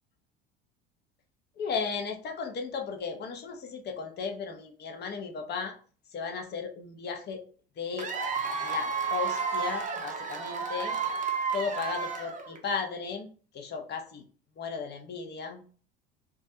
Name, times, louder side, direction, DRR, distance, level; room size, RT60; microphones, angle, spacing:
voice 1, 1.6-5.8 6.1-7.4 7.8-8.1 8.6-11.0 11.5-13.3 13.5-14.2 14.6-15.6, left 5 dB, 35° left, 5 dB, 0.6 m, -35 dB
Cheering / Applause / Crowd, 8.0-12.7, right 5 dB, 25° right, 0.5 m, -32 dB
2.3 x 2.1 x 2.7 m, 0.41 s
hypercardioid pair, 75°, 30 cm